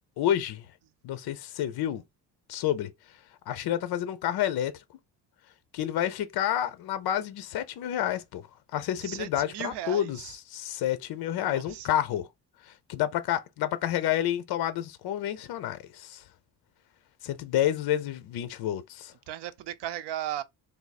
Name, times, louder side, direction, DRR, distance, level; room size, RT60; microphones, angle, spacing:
voice 1, 0.2-0.7 1.0-2.0 2.5-2.9 3.5-4.8 5.7-8.4 8.7-10.2 10.5-12.3 12.6-16.2 17.2-19.1, left 11 dB, 65° left, 0.6 m, -29 dB
voice 2, 9.0-10.3 11.4-11.9 19.3-20.4, right 12 dB, 85° right, 0.7 m, -36 dB
3.4 x 2.7 x 4.1 m
cardioid pair, 170°, 40 cm